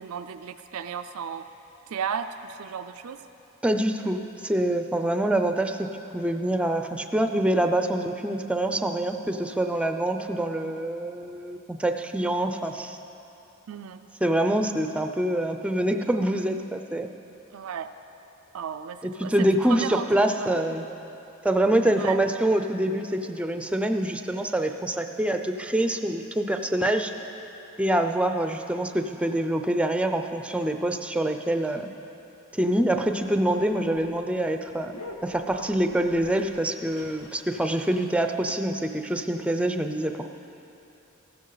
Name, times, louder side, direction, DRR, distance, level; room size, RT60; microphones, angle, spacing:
voice 1, 0.0-1.5 1.9-3.2 13.7-14.0 17.5-17.9 18.5-20.6 22.0-22.2, right 7 dB, 85° right, 9 dB, 0.4 m, -34 dB
voice 2, 3.6-13.0 14.2-17.1 19.0-20.8 21.4-27.1 27.8-31.9 32.5-34.9 35.2-40.3, right 1 dB, 5° right, 6 dB, 0.5 m, -25 dB
sound 1, 33.0-38.4, left 2 dB, 75° left, 1.0 m, -47 dB
14.5 x 12.0 x 4.0 m, 3.0 s
head